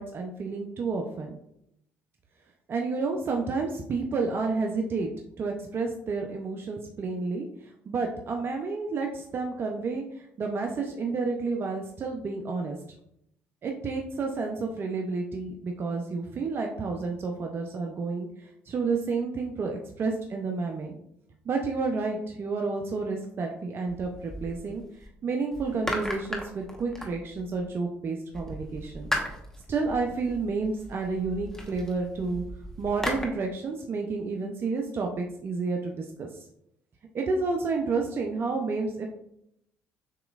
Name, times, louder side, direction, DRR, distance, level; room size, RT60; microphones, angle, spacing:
voice 1, 0.0-1.3 2.7-5.1 5.4-7.5 7.9-12.8 13.6-21.0 21.5-24.8 25.2-29.1 29.7-32.4 32.8-36.3 37.1-39.1, right 4 dB, 45° right, 3 dB, 0.6 m, -30 dB
sound 1, 23.9-25.1 25.5-27.7 28.3-33.3, left 1 dB, 10° left, 1.2 m, -37 dB
6.7 x 3.0 x 2.4 m, 0.75 s
supercardioid pair, 65°, 5 cm